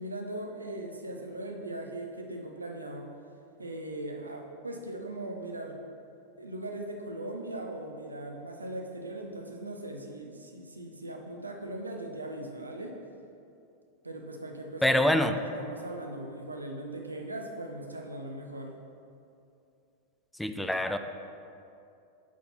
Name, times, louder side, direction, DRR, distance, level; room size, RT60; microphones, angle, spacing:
voice 1, 0.0-3.1 3.6-5.7 6.4-13.0 14.0-15.0 15.4-18.7, right 1 dB, 80° right, 2 dB, 0.8 m, -39 dB
voice 2, 14.8-15.4 20.4-21.0, left 1 dB, 5° left, 7 dB, 0.4 m, -25 dB
7.3 x 4.3 x 5.8 m, 2.6 s
figure-of-eight pair, 90°, 0 cm